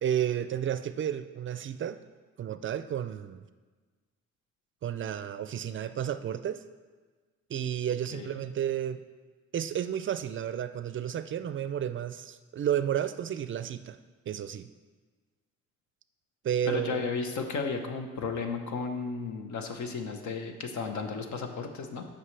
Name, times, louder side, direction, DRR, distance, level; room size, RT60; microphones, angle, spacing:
voice 1, 0.0-2.0 2.4-3.4 4.8-6.6 7.5-9.0 9.5-14.0 14.3-14.7 16.4-17.0, right 10 dB, 40° right, 12 dB, 0.4 m, -32 dB
voice 2, 16.7-22.0, left 4 dB, 70° left, 5 dB, 1.1 m, -34 dB
13.0 x 5.7 x 3.3 m, 1.4 s
cardioid pair, 90°, 30 cm